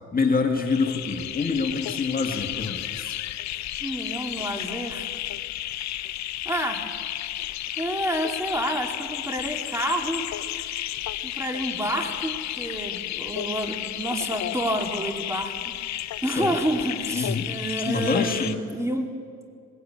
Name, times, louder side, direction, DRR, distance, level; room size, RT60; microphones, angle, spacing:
voice 1, 0.1-3.2 16.3-16.6 17.1-17.5 17.8-18.5, left 4 dB, 30° left, 3 dB, 2.0 m, -26 dB
sound 1, 0.7-18.6, left 13 dB, 65° left, 0.6 m, -32 dB
voice 2, 3.8-5.1 6.4-6.8 7.8-10.3 11.2-15.7 16.2-19.1, right 1 dB, 10° right, 3 dB, 2.4 m, -29 dB
20.0 x 17.0 x 8.6 m, 2.2 s
cardioid pair, 90°, 30 cm